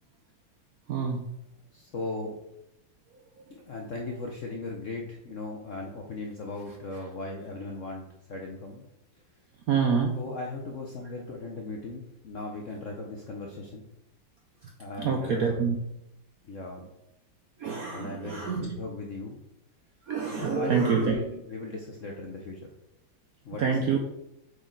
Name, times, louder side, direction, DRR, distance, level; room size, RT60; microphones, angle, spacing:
voice 1, 0.9-1.2 9.7-10.2 15.0-15.7 17.6-18.7 20.1-21.1 23.6-24.0, right 6 dB, 70° right, 3 dB, 0.8 m, -26 dB
voice 2, 1.7-2.4 3.5-8.8 10.1-13.9 14.8-15.7 16.4-16.9 17.9-19.4 20.3-22.6 23.4-23.9, left 2 dB, 60° left, 0 dB, 0.8 m, -38 dB
7.9 x 4.2 x 3.8 m, 0.87 s
omnidirectional pair, 2.2 m